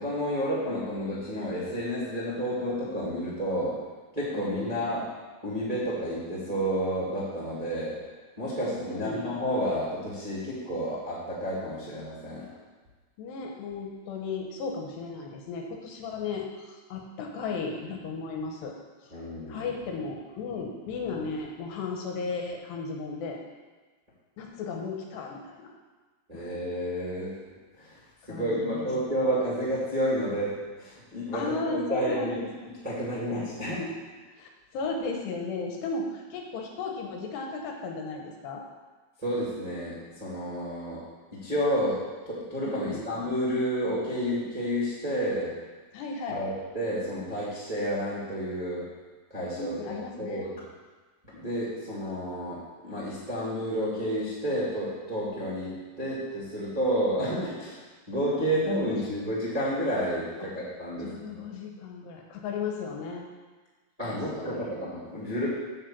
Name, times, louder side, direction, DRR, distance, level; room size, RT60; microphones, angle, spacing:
voice 1, 0.0-3.8 4.1-5.0 5.4-8.0 8.4-12.5 19.1-19.7 26.3-27.3 27.8-28.0 28.3-32.4 32.6-33.8 39.2-41.0 41.3-42.0 42.2-45.5 46.3-48.9 49.3-49.7 50.2-50.5 51.3-57.8 58.1-61.1 64.0-65.5, equal, 15° right, -9 dB, 1.6 m, -30 dB
voice 2, 4.3-4.8 8.7-9.3 12.5-12.6 13.2-18.8 19.0-19.1 19.5-23.4 24.4-25.7 26.3-26.4 28.3-28.9 31.3-32.5 33.8-33.9 34.3-38.6 42.6-43.0 45.9-46.4 49.6-50.5 58.9-59.1 61.0-63.3 64.0-64.2 64.5-64.7, left 4 dB, 80° left, 1 dB, 3.1 m, -35 dB
7.8 x 6.6 x 7.5 m, 1.3 s
omnidirectional pair, 5.0 m